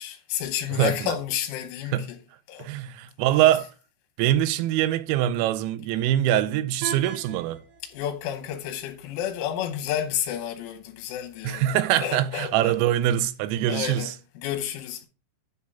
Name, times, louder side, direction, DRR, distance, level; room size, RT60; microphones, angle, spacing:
voice 1, 0.0-2.2 2.5-2.7 7.8-12.8 13.7-14.1 14.4-15.1, left 10 dB, 80° left, 3.3 m, -31 dB
voice 2, 0.8-1.1 1.9-2.0 2.6-3.7 4.2-7.6 11.4-14.1, right 12 dB, 85° right, 2.7 m, -23 dB
sound 1, 6.8-12.8, right 7 dB, 65° right, 2.5 m, -44 dB
10.5 x 3.7 x 5.5 m
omnidirectional pair, 5.7 m